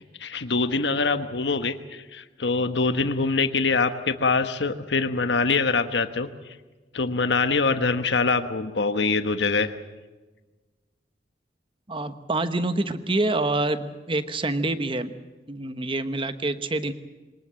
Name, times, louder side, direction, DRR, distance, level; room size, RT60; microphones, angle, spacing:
voice 1, 0.0-6.3 6.9-9.7, left 4 dB, 85° left, 9 dB, 1.2 m, -24 dB
voice 2, 11.9-15.2 15.5-16.9, right 2 dB, 30° right, 11 dB, 1.2 m, -26 dB
23.0 x 20.0 x 7.6 m, 1.3 s
head